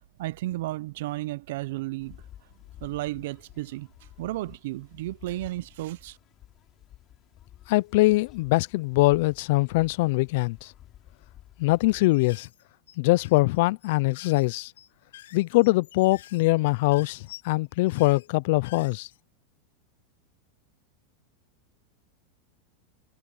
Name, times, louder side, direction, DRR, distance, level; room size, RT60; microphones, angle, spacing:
voice 1, 0.2-2.2 2.8-3.9 4.2-6.2, right 17 dB, 70° right, 0.6 m, -33 dB
sound 1, 2.0-12.1, left 12 dB, 35° left, 3.4 m, -52 dB
voice 2, 7.7-10.7 11.6-12.5 13.0-14.7 15.3-19.1, left 21 dB, 60° left, 0.4 m, -23 dB
sound 2, 12.0-19.2, left 14 dB, 85° left, 2.5 m, -50 dB
supercardioid pair, 140°, 0 cm